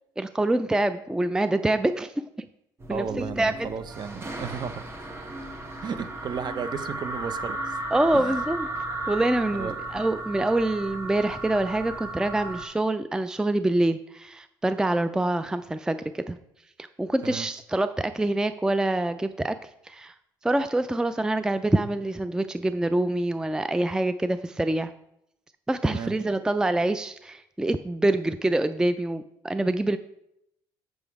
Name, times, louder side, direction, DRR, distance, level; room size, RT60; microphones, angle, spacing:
voice 1, 0.2-2.1 2.4-2.5 2.9-3.7 7.9-8.7 9.1-16.4 16.8-19.6 19.8-20.1 20.4-24.9 25.7-30.0, right 1 dB, 5° right, 11 dB, 0.4 m, -25 dB
sound 1, 2.8-12.7, right 2 dB, 25° right, 1.3 m, -35 dB
voice 2, 2.9-5.1 5.8-7.8 8.1-8.3 9.5-9.8 17.2-17.5 25.8-26.1, right 6 dB, 45° right, 11 dB, 0.8 m, -34 dB
6.8 x 6.3 x 4.7 m, 0.79 s
supercardioid pair, 75°, 10 cm